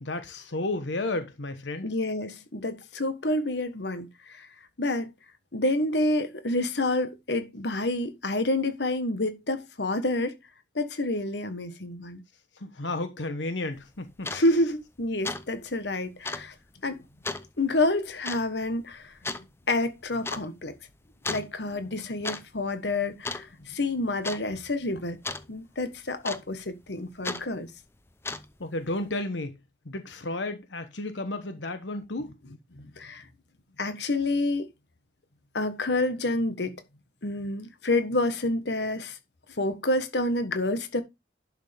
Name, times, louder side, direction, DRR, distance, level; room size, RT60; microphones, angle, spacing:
voice 1, 0.0-1.9 12.6-14.4 28.6-29.6 29.8-32.3, left 2 dB, 85° left, 1.2 m, -32 dB
voice 2, 1.8-4.5 4.8-5.1 5.5-10.3 10.7-12.2 14.3-16.5 16.8-17.0 17.6-19.1 19.7-20.7 21.3-25.2 25.5-27.7 32.7-33.2 33.8-34.7 35.5-36.8 37.2-39.2 39.6-41.0, left 2 dB, 70° left, 1.3 m, -28 dB
sound 1, 13.8-13.9 14.2-14.5 14.8-15.0 15.2-15.5 15.7-15.8 16.2-16.5 17.2-17.5 18.2-18.5 19.2-19.4 20.2-20.5 21.2-21.5 22.0-22.4 22.7-22.9 23.2-23.7 24.2-24.4 25.2-25.5 26.2-26.7 27.2-27.4 28.1-28.6, left 3 dB, 15° left, 0.6 m, -34 dB
11.0 x 6.2 x 3.5 m
head